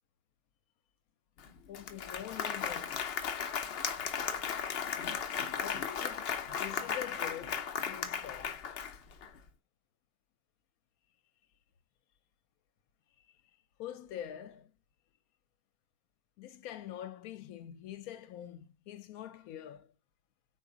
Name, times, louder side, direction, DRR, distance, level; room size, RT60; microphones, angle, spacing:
Applause, 1.4-1.5 1.7-9.3, left 7 dB, 60° left, 0.6 m, -36 dB
voice 1, 1.7-3.0 5.6-8.6 13.8-14.7 16.4-19.9, left 11 dB, 80° left, 1.0 m, -45 dB
4.0 x 2.6 x 3.6 m
omnidirectional pair, 1.5 m